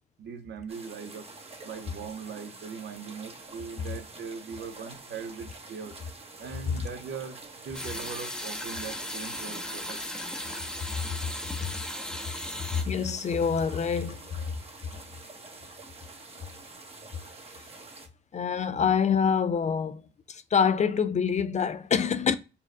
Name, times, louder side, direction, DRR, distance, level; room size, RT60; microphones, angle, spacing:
voice 1, 0.2-1.3 1.6-5.9 6.4-10.0, right 6 dB, 60° right, 0.8 m, -40 dB
sound 1, 0.7-18.1, right 3 dB, 30° right, 1.0 m, -47 dB
sound 2, 7.7-12.8, left 1 dB, 5° left, 0.8 m, -36 dB
voice 2, 12.7-14.2 18.3-20.0 20.3-22.4, left 6 dB, 35° left, 0.4 m, -26 dB
4.2 x 2.3 x 3.6 m
cardioid pair, 90°, 20 cm